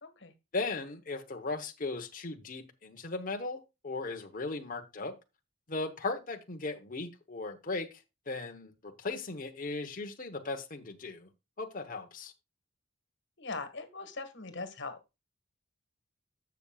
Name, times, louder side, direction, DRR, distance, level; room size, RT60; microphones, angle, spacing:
voice 1, 0.0-0.3 13.4-15.0, left 3 dB, 60° left, 1.7 m, -40 dB
voice 2, 0.5-3.6 3.8-5.1 5.7-7.9 8.3-11.3 11.6-12.3, left 3 dB, 45° left, 1.1 m, -37 dB
12.0 x 7.1 x 2.4 m
head